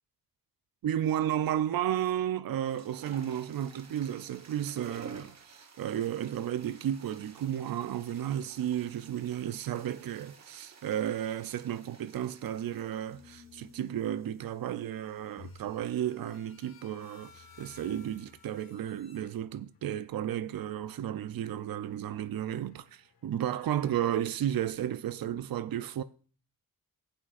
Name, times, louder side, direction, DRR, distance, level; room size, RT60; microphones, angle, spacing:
voice 1, 0.8-26.0, right 10 dB, 75° right, 0.5 m, -33 dB
sound 1, 1.5-1.8 2.5-18.3, right 5 dB, 45° right, 1.3 m, -54 dB
sound 2, 13.1-20.0 21.0-24.7, left 4 dB, 80° left, 1.4 m, -57 dB
15.0 x 8.6 x 2.5 m
wide cardioid pair, 140°, 36 cm